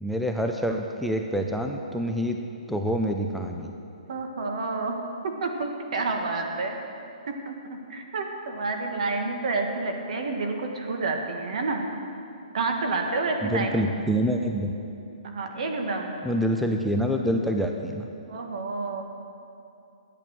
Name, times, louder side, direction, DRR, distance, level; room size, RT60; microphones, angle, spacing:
voice 1, 0.0-2.4 2.7-3.7 13.4-14.7 16.2-18.1, equal, ahead, 2 dB, 0.4 m, -26 dB
voice 2, 4.1-5.0 5.2-6.8 7.3-11.8 12.5-13.8 15.2-16.1 18.3-19.0, right 3 dB, 60° right, 3 dB, 1.6 m, -29 dB
11.5 x 8.8 x 6.3 m, 2.6 s
hypercardioid pair, 155°, 4 cm